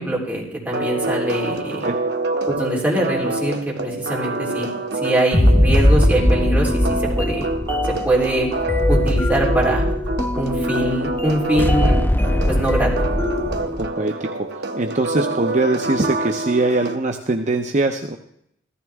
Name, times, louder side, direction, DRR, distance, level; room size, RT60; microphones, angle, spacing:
voice 1, 0.0-1.9 2.5-4.7 5.0-7.5 7.9-8.5 8.9-9.8 10.3-12.0 12.5-13.1, right 1 dB, 10° right, -4 dB, 3.6 m, -23 dB
sound 1, 0.7-17.0, right 2 dB, 60° right, 1.0 m, -27 dB
sound 2, 5.3-13.9, left 1 dB, 10° left, 0.5 m, -20 dB
voice 2, 13.8-18.2, right 2 dB, 40° right, 4 dB, 0.7 m, -22 dB
15.0 x 14.0 x 3.6 m, 0.74 s
head